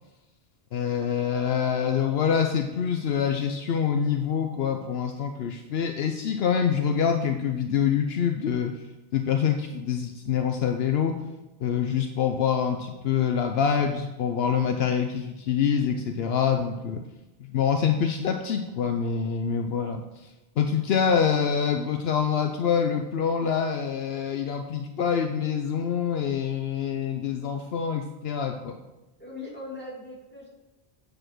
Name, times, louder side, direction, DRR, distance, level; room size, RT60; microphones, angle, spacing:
voice 1, 0.7-8.7 9.1-11.1 11.6-17.0 17.4-20.3 20.6-28.8, left 7 dB, 70° left, 5 dB, 0.9 m, -25 dB
voice 2, 29.2-30.5, left 2 dB, 10° left, -5 dB, 2.7 m, -39 dB
8.8 x 4.9 x 6.1 m, 1.0 s
omnidirectional pair, 1.1 m